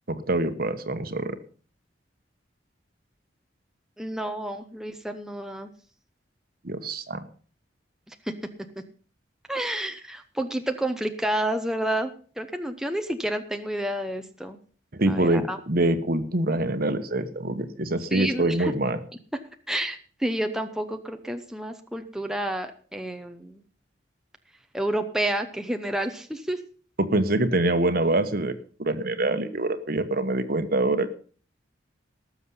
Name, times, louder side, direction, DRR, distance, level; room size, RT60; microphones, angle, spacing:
voice 1, 0.1-1.4 6.6-7.2 14.9-19.0 27.0-28.5 28.8-31.1, right 2 dB, 50° right, 10 dB, 1.2 m, -25 dB
voice 2, 4.0-5.7 8.1-8.3 9.5-14.6 15.1-15.6 18.1-18.7 19.7-23.6 24.7-26.6, right 1 dB, 5° right, 5 dB, 0.8 m, -30 dB
18.5 x 7.1 x 5.6 m, 0.43 s
head